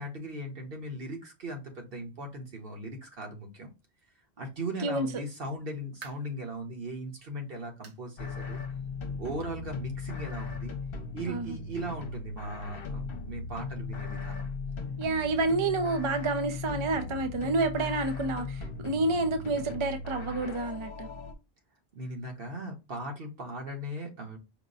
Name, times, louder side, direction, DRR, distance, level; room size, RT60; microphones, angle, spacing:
voice 1, 0.0-3.7 4.4-8.6 9.2-10.7 11.1-14.5 17.8-17.9 21.9-24.4, right 1 dB, 60° right, 1.3 m, -38 dB
sound 1, 5.6-6.4 6.9-7.1 7.8-8.1 8.4-8.5 9.0-9.1 10.2-10.3, right 5 dB, 85° right, 1.3 m, -50 dB
sound 2, 8.2-21.3, left 4 dB, 60° left, 0.9 m, -38 dB
voice 2, 15.0-21.1, right 3 dB, 40° right, 0.5 m, -29 dB
5.1 x 2.2 x 3.9 m
omnidirectional pair, 1.1 m